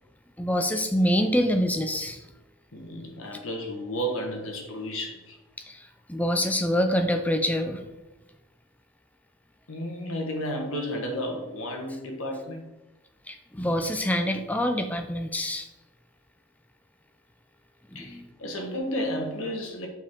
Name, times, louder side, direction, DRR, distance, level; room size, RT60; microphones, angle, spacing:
voice 1, 0.4-2.2 5.7-5.8 6.1-7.9 13.3-15.7 17.9-18.3, equal, 5° left, 6 dB, 0.5 m, -26 dB
voice 2, 2.7-5.4 9.7-12.7 17.9-19.9, equal, 70° left, 1 dB, 1.3 m, -32 dB
7.2 x 4.7 x 3.7 m, 1.0 s
head